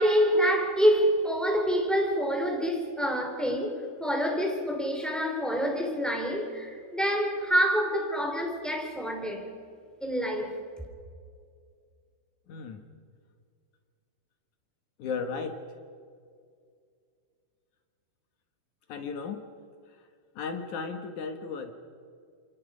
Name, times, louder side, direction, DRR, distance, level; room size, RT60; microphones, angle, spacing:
voice 1, 0.0-9.5 10.0-10.5, equal, ahead, 2.7 m, -26 dB
voice 2, 12.5-12.8 15.0-15.6 18.9-19.4 19.9-20.1 20.4-21.7, left 5 dB, 65° left, 1.9 m, -35 dB
29.0 x 27.0 x 5.1 m
omnidirectional pair, 5.4 m